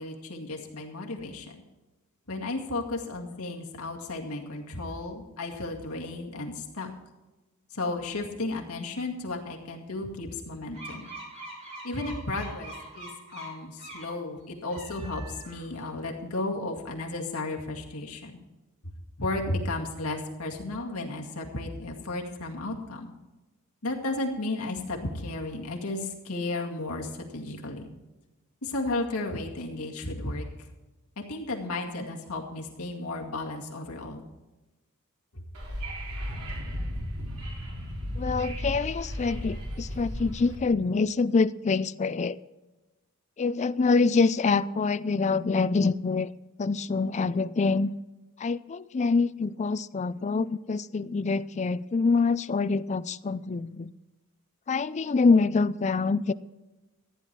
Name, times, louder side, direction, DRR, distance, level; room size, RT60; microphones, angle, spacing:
voice 1, 0.0-1.5 2.3-6.9 7.7-11.1 11.8-18.4 19.2-23.1 23.8-27.9 28.6-30.5 31.2-34.2 35.3-35.4, left 2 dB, 85° left, 0 dB, 2.1 m, -34 dB
sound 1, 10.7-14.2 14.6-15.8, right 2 dB, 30° right, 3.9 m, -43 dB
Wind / Subway metro underground, 35.5-40.6, equal, 85° right, 3.7 m, -35 dB
voice 2, 38.2-42.4 43.4-46.3 46.6-47.9 48.4-53.9 54.7-56.3, left 4 dB, 30° left, 16 dB, 0.4 m, -25 dB
14.5 x 10.0 x 4.6 m, 1.1 s
head